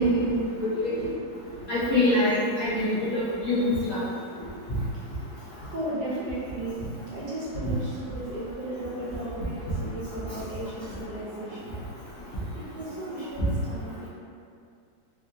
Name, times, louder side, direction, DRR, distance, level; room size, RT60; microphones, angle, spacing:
voice 1, 0.0-0.9 1.7-4.0, left 1 dB, 55° left, -11 dB, 0.9 m, -24 dB
voice 2, 0.7-1.7 2.1-2.2 4.4-5.0 5.5-6.8 7.1-11.7 12.6-14.1, right 1 dB, 70° right, -8 dB, 1.4 m, -36 dB
3.6 x 2.3 x 2.6 m, 2.3 s
omnidirectional pair, 1.9 m